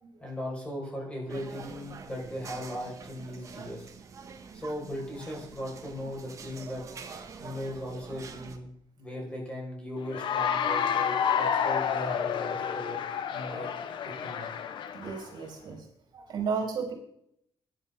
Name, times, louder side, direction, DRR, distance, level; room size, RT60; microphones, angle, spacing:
voice 1, 0.2-3.9 4.5-6.8 7.4-8.7 9.0-13.0 13.3-13.7 14.0-14.5, equal, 15° left, -2 dB, 5.6 m, -38 dB
sound 1, 1.3-8.6, right 5 dB, 40° right, 1.8 m, -46 dB
Cheering / Applause, 10.1-15.3, left 8 dB, 70° left, 1.2 m, -29 dB
voice 2, 14.9-15.9 16.1-16.9, right 5 dB, 60° right, 0 dB, 4.3 m, -34 dB
16.0 x 10.5 x 3.8 m, 0.70 s
cardioid pair, 145°, 9 cm